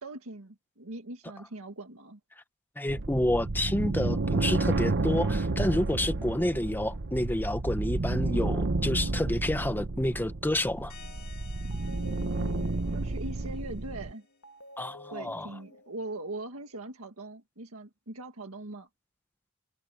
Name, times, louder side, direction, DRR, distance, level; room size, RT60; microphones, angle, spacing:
voice 1, 0.0-2.2 12.9-14.3 15.1-18.9, right 2 dB, 70° right, 1.9 m, -41 dB
voice 2, 2.8-10.9 14.8-15.5, left 1 dB, 10° left, 0.9 m, -29 dB
sound 1, 2.9-14.1, right 2 dB, 55° right, 0.9 m, -31 dB
sound 2, 10.9-14.3, left 7 dB, 45° left, 2.6 m, -54 dB
sound 3, 11.0-11.3 11.7-16.8, left 1 dB, 70° left, 2.5 m, -51 dB
head